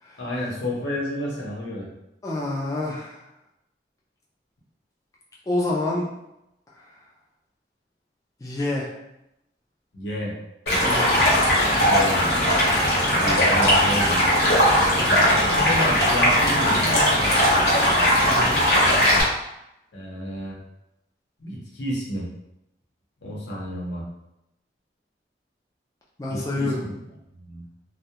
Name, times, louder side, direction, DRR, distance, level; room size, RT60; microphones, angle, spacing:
voice 1, 0.2-1.9 9.9-10.4 11.8-12.4 13.0-14.3 15.1-17.3 19.9-20.6 21.4-22.3 23.2-24.0 26.3-27.0 27.3-27.6, left 1 dB, 90° left, -4 dB, 0.7 m, -30 dB
voice 2, 2.2-3.2 5.5-6.1 6.7-6.9 8.4-8.9 10.8-11.1 14.5-15.2 18.2-18.6 26.2-26.8, left 2 dB, 20° left, -4 dB, 0.3 m, -28 dB
Stream, 10.7-19.2, equal, 70° left, 0.9 m, -19 dB
2.2 x 2.1 x 2.8 m, 0.86 s
head